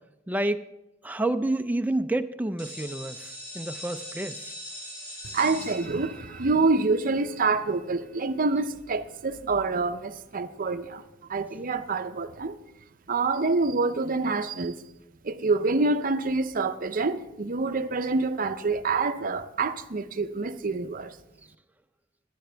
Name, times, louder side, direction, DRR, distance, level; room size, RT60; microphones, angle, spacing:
voice 1, 0.3-0.6 1.0-4.5, right 1 dB, 10° right, 0.5 m, -29 dB
sound 1, 2.6-8.2, equal, 30° left, 5.6 m, -42 dB
voice 2, 5.3-11.0 11.3-12.6 13.1-14.8 15.2-21.2, right 3 dB, 45° right, 0.6 m, -26 dB
17.0 x 12.5 x 3.4 m
head